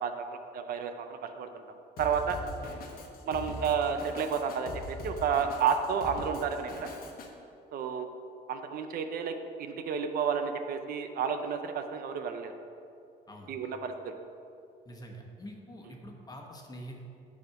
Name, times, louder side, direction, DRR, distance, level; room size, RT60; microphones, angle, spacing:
voice 1, 0.0-1.6 2.0-2.4 3.3-6.9 7.7-8.1 8.5-9.3 9.6-12.5 13.5-14.1, right 6 dB, 60° right, 7 dB, 0.6 m, -31 dB
Drum kit, 2.0-7.3, left 2 dB, 60° left, 1.1 m, -42 dB
voice 2, 14.8-17.0, equal, 20° left, 1 dB, 1.2 m, -46 dB
9.7 x 4.2 x 5.8 m, 2.6 s
cardioid pair, 110°, 17 cm